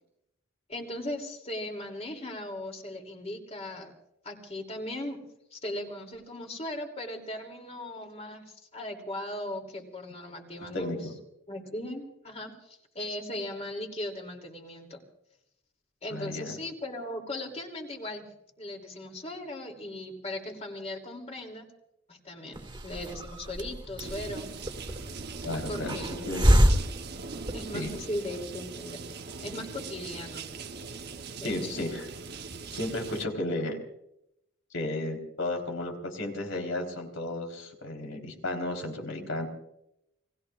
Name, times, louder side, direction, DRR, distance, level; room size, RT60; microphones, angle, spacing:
voice 1, 0.7-3.9 4.2-5.2 5.5-10.9 11.5-15.0 16.0-18.3 18.6-21.7 22.1-24.5 25.7-26.3 27.5-29.0 29.4-30.4 31.4-31.7, left 1 dB, 30° left, 3 dB, 2.9 m, -38 dB
voice 2, 10.7-11.1 16.1-16.5 25.4-26.5 27.7-27.9 31.4-32.1 32.7-33.8 34.7-39.5, left 1 dB, 75° left, 3 dB, 4.0 m, -33 dB
Hiss, 22.5-28.0, equal, 20° right, 2.1 m, -27 dB
sound 1, 24.0-33.2, right 4 dB, 50° right, 1.0 m, -41 dB
29.5 x 19.5 x 2.5 m, 0.80 s
head